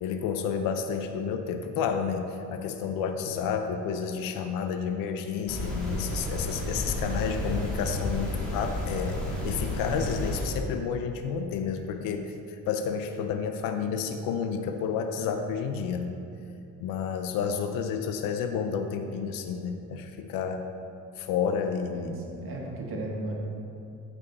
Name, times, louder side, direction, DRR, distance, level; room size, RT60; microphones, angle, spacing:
voice 1, 0.0-9.2 9.4-12.3 12.7-16.2 16.8-20.6 21.2-22.2, left 6 dB, 75° left, 6 dB, 0.7 m, -30 dB
sound 1, 5.5-10.5, left 1 dB, 5° left, 1.9 m, -31 dB
voice 2, 21.9-23.3, right 1 dB, 40° right, -2 dB, 1.6 m, -35 dB
14.0 x 5.4 x 4.2 m, 2.7 s
cardioid pair, 175°, 34 cm